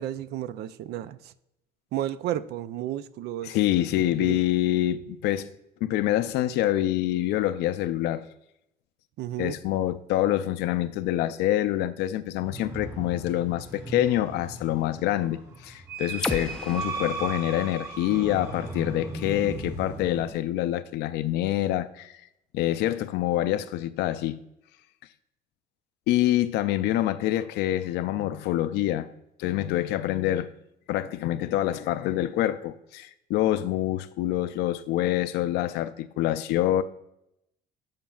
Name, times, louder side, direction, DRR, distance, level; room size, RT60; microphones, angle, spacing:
voice 1, 0.0-1.3 1.9-3.6 4.2-4.4 9.2-9.5, right 12 dB, 75° right, 0.4 m, -32 dB
voice 2, 3.4-5.5 5.8-8.3 9.4-22.2 22.5-24.4 26.1-29.1 29.4-30.5 30.9-36.8, left 13 dB, 85° left, 0.4 m, -26 dB
sound 1, 12.4-20.3, right 3 dB, 20° right, 2.9 m, -37 dB
sound 2, 16.2-20.1, left 1 dB, 5° left, 0.4 m, -38 dB
12.5 x 5.2 x 2.3 m
cardioid pair, 110°, 17 cm